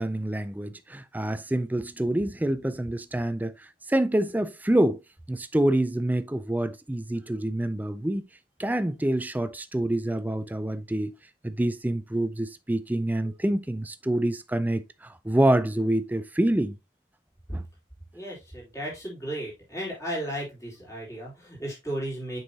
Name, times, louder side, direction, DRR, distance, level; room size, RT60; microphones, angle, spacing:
voice 1, 0.0-5.0 5.3-8.3 8.6-11.1 11.4-16.8 17.5-17.6, right 1 dB, 10° right, 0.4 m, -26 dB
voice 2, 18.1-22.4, right 1 dB, 20° left, 3.7 m, -34 dB
6.8 x 5.5 x 2.7 m
head